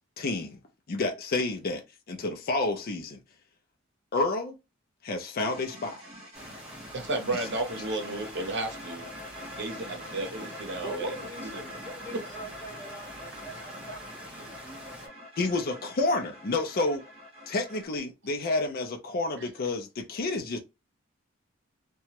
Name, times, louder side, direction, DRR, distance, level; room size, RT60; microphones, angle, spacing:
voice 1, 0.2-0.6 0.9-3.2 4.1-4.5 5.0-6.0 7.3-7.5 15.4-17.0 17.5-20.6, left 2 dB, 45° left, 0.5 m, -29 dB
sound 1, 5.4-17.9, equal, 30° right, 1.6 m, -45 dB
sound 2, 6.3-15.1, equal, 5° right, 0.9 m, -46 dB
voice 2, 6.9-9.1 9.5-11.7 12.1-12.2, right 2 dB, 60° right, 0.8 m, -33 dB
voice 3, 10.7-15.2, right 2 dB, 10° left, 1.5 m, -44 dB
2.9 x 2.3 x 2.9 m
head